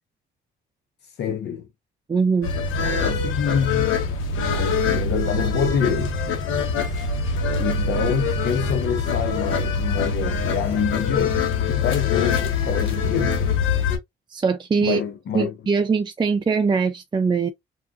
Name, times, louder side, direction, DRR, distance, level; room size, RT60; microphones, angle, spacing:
voice 1, 1.0-1.7 2.7-4.0 4.5-6.1 7.6-13.5 14.8-15.5, left 8 dB, 60° left, 0.5 m, -26 dB
voice 2, 2.1-2.5 14.3-15.0 15.3-17.5, right 5 dB, 25° right, 0.5 m, -21 dB
sound 1, 2.4-14.0, left 4 dB, 85° left, 1.1 m, -24 dB
3.5 x 2.6 x 2.4 m
cardioid pair, 90°, 20 cm